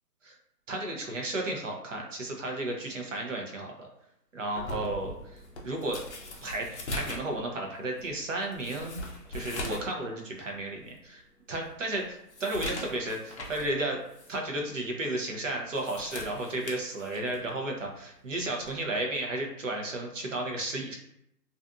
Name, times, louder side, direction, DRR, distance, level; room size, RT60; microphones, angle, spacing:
voice 1, 0.7-3.9 4.3-5.1 5.6-6.0 6.4-9.0 9.3-11.2 11.5-14.0 14.3-21.0, right 2 dB, 50° right, 1 dB, 0.6 m, -33 dB
sound 1, 4.5-9.9 10.3-10.4 11.0-11.1 11.5-13.7 14.1-14.3 15.6-17.5 18.6-18.8, left 1 dB, 45° left, 0.5 m, -40 dB
2.5 x 2.4 x 2.3 m, 0.79 s
hypercardioid pair, 160°, 49 cm